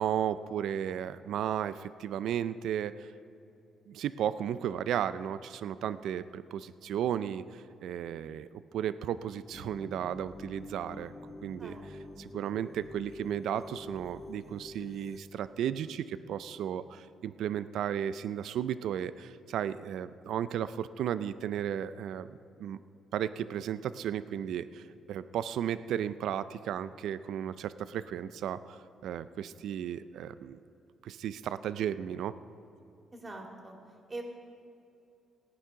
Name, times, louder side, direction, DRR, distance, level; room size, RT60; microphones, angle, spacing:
voice 1, 0.0-3.1 3.9-11.1 11.4-11.8 12.2-22.3 22.6-22.8 23.1-30.6 31.0-32.3, right 9 dB, 75° right, 14 dB, 0.4 m, -34 dB
sound 1, 9.5-15.2, left 2 dB, 25° left, 1.0 m, -47 dB
voice 2, 33.1-33.8 34.1-34.2, right 2 dB, 25° right, 2 dB, 2.5 m, -43 dB
17.5 x 9.3 x 5.7 m, 2.7 s
cardioid pair, 90°, 0 cm